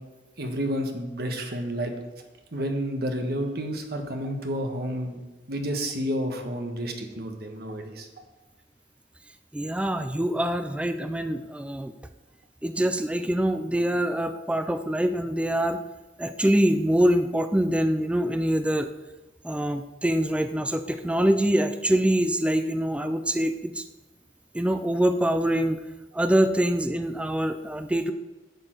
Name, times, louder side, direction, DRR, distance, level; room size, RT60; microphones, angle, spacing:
voice 1, 0.4-1.9 2.5-5.2 5.5-8.1, equal, 60° right, 4 dB, 1.3 m, -30 dB
voice 2, 9.5-11.9 12.6-15.8 16.2-18.9 19.4-23.8 24.5-25.8 26.1-28.1, right 1 dB, 5° right, 9 dB, 0.4 m, -24 dB
10.5 x 6.8 x 4.5 m, 1.1 s
head